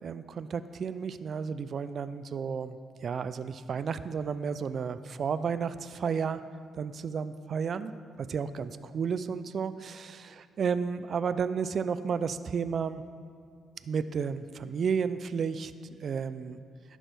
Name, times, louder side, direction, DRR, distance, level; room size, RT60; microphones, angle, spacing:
voice 1, 0.0-6.4 6.7-7.9 8.3-13.0 13.9-15.7 16.0-16.6, right 6 dB, 50° right, 13 dB, 0.3 m, -32 dB
11.5 x 6.2 x 3.4 m, 2.3 s
cardioid pair, 90°, 0 cm